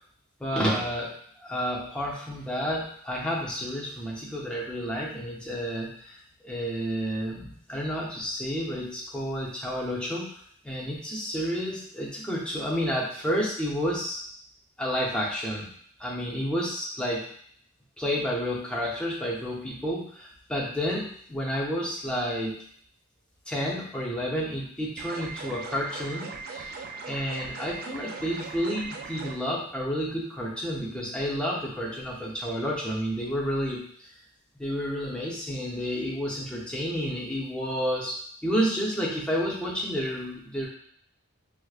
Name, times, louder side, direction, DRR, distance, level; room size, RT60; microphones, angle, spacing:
voice 1, 0.4-1.1 1.4-10.3 10.6-14.2 14.8-15.7 16.0-17.3 18.0-22.6 23.5-26.7 27.0-33.9 34.6-40.7, equal, 5° left, -4 dB, 0.6 m, -30 dB
sound 1, 25.0-29.4, right 4 dB, 40° right, 0.3 m, -39 dB
4.6 x 2.1 x 2.4 m, 0.62 s
head